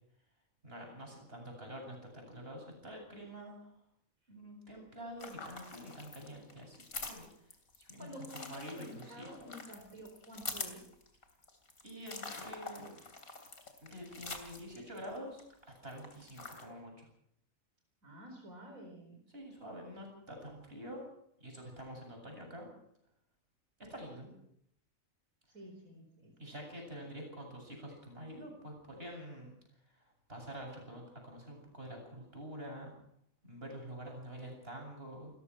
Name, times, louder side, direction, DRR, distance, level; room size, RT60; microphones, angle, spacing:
voice 1, 0.6-3.7 4.3-6.8 7.1-8.1 8.3-9.5 11.8-13.0 13.8-17.1 19.3-21.0 21.4-22.7 23.9-24.3 26.4-29.5 29.9-32.9 33.4-35.3, equal, 45° right, 2 dB, 7.9 m, -47 dB
sound 1, 5.2-15.4 15.8-16.6, left 3 dB, 80° left, 3.5 m, -46 dB
voice 2, 8.0-10.8 18.0-19.2 24.2-24.3 25.5-27.1, equal, 80° right, 2 dB, 5.0 m, -51 dB
30.0 x 14.5 x 6.3 m, 0.72 s
omnidirectional pair, 1.4 m